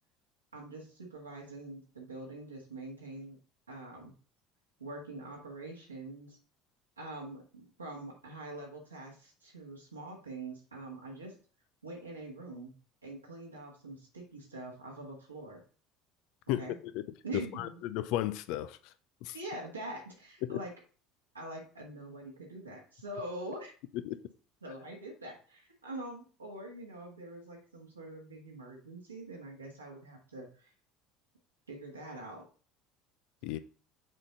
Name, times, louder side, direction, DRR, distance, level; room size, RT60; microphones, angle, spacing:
voice 1, 0.5-3.4 3.7-4.1 4.8-6.4 7.0-11.4 11.8-12.7 13.0-15.6 16.6-16.7 17.2-17.8 19.3-20.7 21.3-23.7 24.6-30.7 31.7-32.4, right 2 dB, 90° right, 1.6 m, -44 dB
voice 2, 17.3-18.9 19.2-19.4 20.4-20.6 23.9-24.2 33.4-33.6, left 14 dB, 60° left, 0.5 m, -34 dB
6.2 x 4.3 x 3.8 m
figure-of-eight pair, 65°, 0 cm